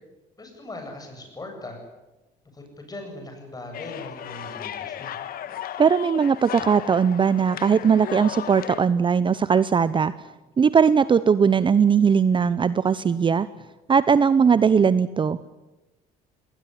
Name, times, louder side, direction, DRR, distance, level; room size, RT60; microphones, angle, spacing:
voice 1, 0.4-1.8 2.5-5.2, left 2 dB, 20° left, 4 dB, 8.0 m, -39 dB
sound 1, 3.7-8.8, left 10 dB, 60° left, 1.4 m, -35 dB
voice 2, 5.8-10.1 10.6-13.5 13.9-15.4, right 6 dB, 30° right, 16 dB, 0.7 m, -19 dB
20.0 x 19.5 x 9.8 m, 1.1 s
cardioid pair, 110°, 17 cm